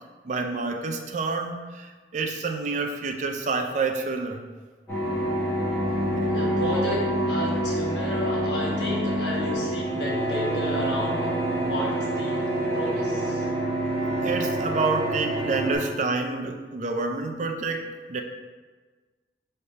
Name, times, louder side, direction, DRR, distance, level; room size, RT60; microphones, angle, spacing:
voice 1, 0.2-4.4 14.2-18.2, right 4 dB, 45° right, 4 dB, 0.4 m, -28 dB
sound 1, 4.9-15.8, right 1 dB, 15° left, 1.4 m, -27 dB
voice 2, 6.3-12.4 12.7-13.5, equal, 80° left, -4 dB, 1.2 m, -32 dB
5.5 x 3.2 x 2.8 m, 1.4 s
head